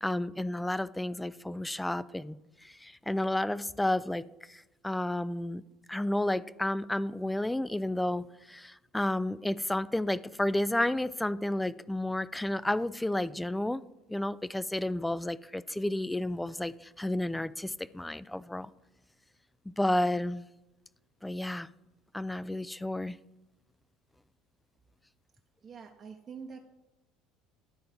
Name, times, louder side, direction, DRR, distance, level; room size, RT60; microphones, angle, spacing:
voice 1, 0.0-5.6 5.9-13.8 14.1-18.7 19.7-20.4 21.2-21.7 22.1-23.2, left 1 dB, 5° left, 0.3 m, -31 dB
voice 2, 25.6-26.6, right 5 dB, 35° right, 0.8 m, -45 dB
11.0 x 4.5 x 5.1 m
hypercardioid pair, 65°, 0 cm